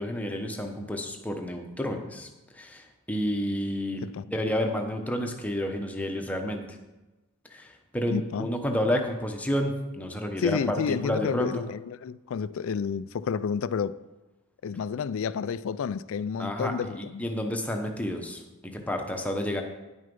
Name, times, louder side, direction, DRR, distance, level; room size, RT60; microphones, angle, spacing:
voice 1, 0.0-2.3 2.5-6.8 7.5-11.6 16.4-19.6, equal, 5° left, 0.9 m, -30 dB
voice 2, 8.1-8.5 10.4-14.0 14.6-17.2, left 6 dB, 60° left, 0.3 m, -30 dB
9.9 x 6.4 x 5.3 m
head